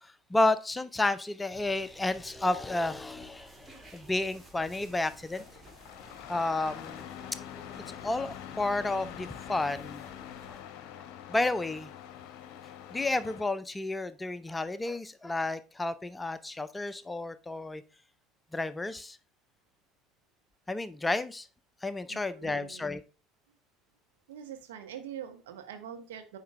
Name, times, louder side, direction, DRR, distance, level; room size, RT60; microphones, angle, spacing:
voice 1, 0.0-5.4 6.3-7.1 7.9-10.0 10.5-10.6 11.3-11.9 12.9-17.8 18.5-19.2 20.7-21.5 21.8-23.0, left 2 dB, 15° left, 0.5 m, -31 dB
sound 1, 1.5-10.6, right 2 dB, 20° right, 1.9 m, -54 dB
Engine starting, 5.4-13.5, left 10 dB, 55° left, 0.8 m, -45 dB
voice 2, 22.1-22.9 23.5-23.6 24.3-26.4, right 9 dB, 65° right, 1.1 m, -44 dB
9.4 x 4.5 x 3.3 m
figure-of-eight pair, 60°, 0 cm